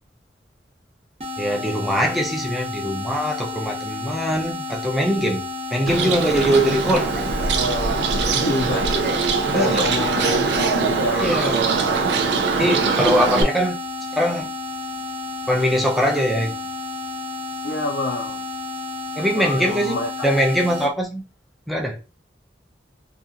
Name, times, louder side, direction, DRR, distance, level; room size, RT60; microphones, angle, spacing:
sound 1, 1.2-20.9, left 2 dB, 35° right, 0.8 m, -31 dB
voice 1, 1.4-5.4 5.7-7.2 9.5-9.9 11.2-11.6 12.6-13.8 14.2-14.5 15.5-16.6 19.2-20.0 20.2-21.2 21.7-22.0, equal, ahead, 0.5 m, -22 dB
Bird, 5.9-13.4, right 5 dB, 80° right, 0.4 m, -22 dB
voice 2, 8.3-8.9 9.5-11.6 17.6-18.4 19.3-20.1, left 2 dB, 65° left, 0.5 m, -27 dB
2.8 x 2.4 x 2.4 m
head